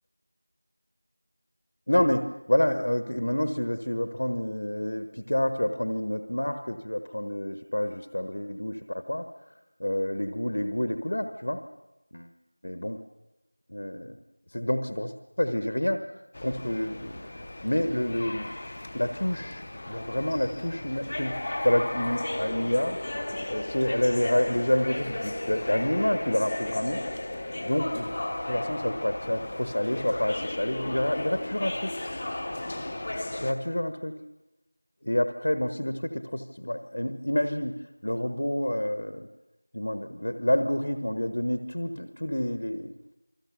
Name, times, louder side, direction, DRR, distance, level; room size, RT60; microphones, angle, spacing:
voice 1, 1.9-9.3 9.8-11.6 12.1-12.3 12.6-13.0 13.7-14.2 14.5-16.1 16.4-17.2 17.6-18.5 18.9-23.0 23.5-27.0 27.6-28.1 28.5-32.0 33.4-34.2 35.0-37.8 38.0-39.3 39.7-42.9, left 1 dB, 35° left, 9 dB, 1.3 m, -28 dB
sound 1, 16.3-33.5, left 1 dB, 15° left, 0.9 m, -35 dB
28.5 x 20.5 x 7.1 m, 0.96 s
figure-of-eight pair, 180°, 0 cm